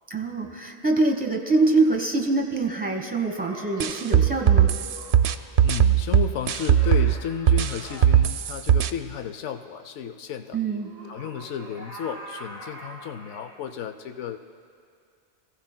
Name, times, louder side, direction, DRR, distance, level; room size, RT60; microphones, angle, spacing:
voice 1, 0.1-4.7 10.5-10.9, right 3 dB, 10° right, 2 dB, 1.0 m, -24 dB
sound 1, 3.1-5.5 6.5-8.1 10.6-13.6, equal, 45° left, 1.4 m, -43 dB
sound 2, 3.8-7.1 7.5-8.9, right 9 dB, 70° right, 0.8 m, -19 dB
voice 2, 5.6-10.6 11.1-14.4, left 8 dB, 85° left, 7 dB, 1.0 m, -33 dB
24.5 x 16.0 x 2.2 m, 2.3 s
omnidirectional pair, 1.2 m